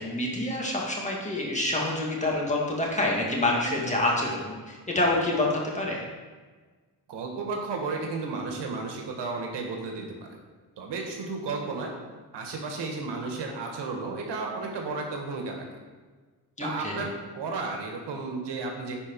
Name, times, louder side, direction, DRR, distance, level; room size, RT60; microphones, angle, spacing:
voice 1, 0.0-6.0 16.6-17.1, left 2 dB, 15° left, -3 dB, 2.0 m, -27 dB
voice 2, 7.1-10.4 10.8-11.9 12.3-15.6 16.6-19.0, right 3 dB, 85° right, 1 dB, 1.6 m, -33 dB
11.0 x 4.8 x 4.6 m, 1.4 s
cardioid pair, 110°, 41 cm